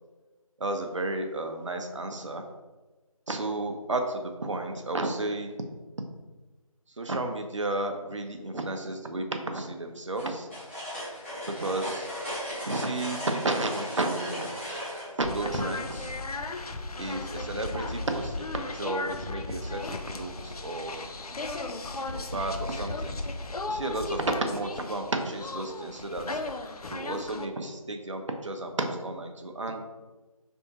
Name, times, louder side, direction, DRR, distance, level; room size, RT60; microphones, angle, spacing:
voice 1, 0.6-2.5 3.3-5.6 6.9-10.5 11.5-12.1 12.6-14.5 15.1-16.1 17.0-21.1 22.0-23.2 23.7-26.4 26.9-29.8, right 2 dB, 55° right, 5 dB, 0.6 m, -32 dB
sound 1, 10.1-15.1, equal, 20° left, 1.4 m, -36 dB
sound 2, 15.2-27.4, left 2 dB, 80° left, 0.5 m, -36 dB
4.5 x 3.4 x 2.8 m, 1.2 s
figure-of-eight pair, 170°, 19 cm